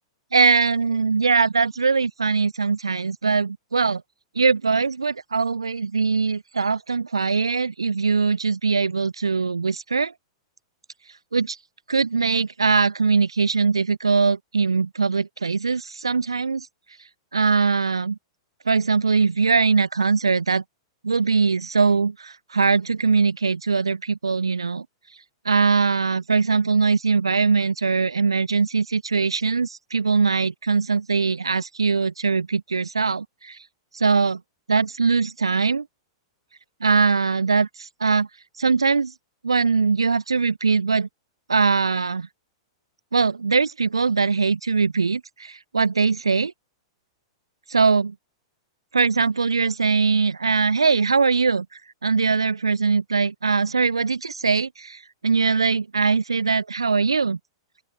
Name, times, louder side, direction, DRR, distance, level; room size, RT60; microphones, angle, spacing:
voice 1, 0.3-4.0 4.4-10.1 11.3-11.6 11.9-16.7 17.3-18.2 18.7-20.6 21.0-24.8 25.4-33.6 33.9-34.4 34.7-35.9 36.8-38.3 38.6-39.1 39.4-41.1 41.5-42.3 43.1-46.5 47.7-48.1 48.9-57.4, right 4 dB, 85° right, 0.7 m, -21 dB
open air
figure-of-eight pair, 105°, 3 cm